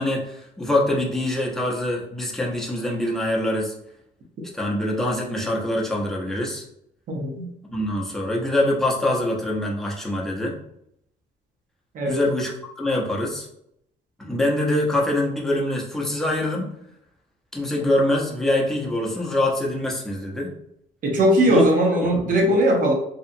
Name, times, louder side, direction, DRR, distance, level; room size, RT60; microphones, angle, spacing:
voice 1, 0.0-3.7 4.5-6.6 7.7-10.5 12.1-13.5 14.2-16.7 17.5-20.5 21.5-21.6 22.0-22.5, left 1 dB, ahead, -3 dB, 0.6 m, -24 dB
voice 2, 7.1-7.5 11.9-12.2 21.0-22.9, right 1 dB, 55° right, 0 dB, 0.8 m, -19 dB
2.8 x 2.3 x 2.6 m, 0.75 s
cardioid pair, 110°, 17 cm